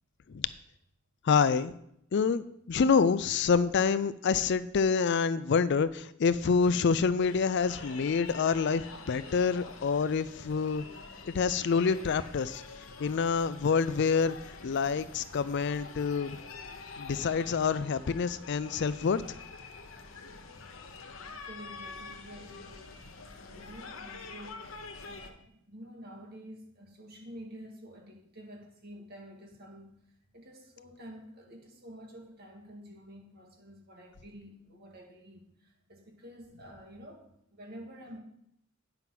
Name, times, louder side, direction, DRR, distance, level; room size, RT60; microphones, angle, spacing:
voice 1, 1.2-1.7 2.1-10.8 11.3-12.6 13.0-14.4 14.6-16.4 17.0-19.2, left 5 dB, 60° left, 15 dB, 0.4 m, -27 dB
sound 1, 7.2-25.3, left 4 dB, 85° left, 1.0 m, -46 dB
voice 2, 21.2-23.0 23.4-24.8 25.1-30.0 30.3-38.2, equal, 50° right, 1 dB, 2.0 m, -49 dB
9.2 x 5.7 x 5.9 m, 0.73 s
head